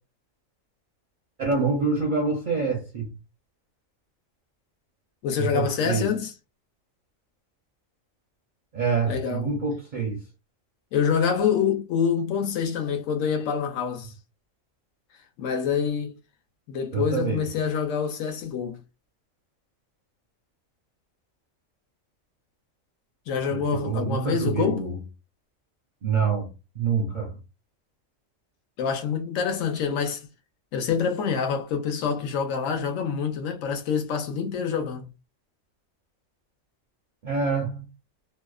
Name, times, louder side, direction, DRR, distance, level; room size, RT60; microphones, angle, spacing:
voice 1, 1.4-3.1 5.4-6.1 8.7-10.2 16.9-17.5 23.5-25.0 26.0-26.5 26.8-27.3 37.2-37.9, right 4 dB, 60° right, 0.5 m, -26 dB
voice 2, 5.2-6.3 9.0-9.5 10.9-14.1 15.4-16.1 16.7-18.8 23.3-24.8 28.8-30.3 30.7-35.1, left 6 dB, 75° left, 1.0 m, -26 dB
2.7 x 2.0 x 2.3 m
omnidirectional pair, 1.4 m